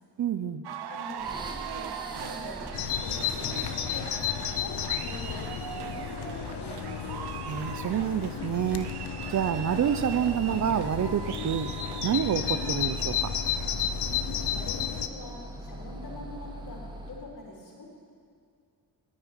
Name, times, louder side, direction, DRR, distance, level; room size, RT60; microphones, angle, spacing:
voice 1, 0.2-0.6 7.4-8.9 9.3-11.7 12.0-13.3, right 9 dB, 45° right, 11 dB, 0.5 m, -28 dB
sound 1, 0.6-13.7, right 9 dB, 70° right, 0.8 m, -40 dB
voice 2, 0.9-4.0 4.4-7.1 14.5-18.0, left 2 dB, 50° left, -2 dB, 3.2 m, -44 dB
sound 2, 1.2-17.3, equal, 10° right, 1.5 m, -42 dB
Bird vocalization bird call bird song, 2.7-15.1, left 10 dB, 75° left, 0.8 m, -33 dB
10.5 x 10.5 x 9.0 m, 2.3 s
wide cardioid pair, 140°, 41 cm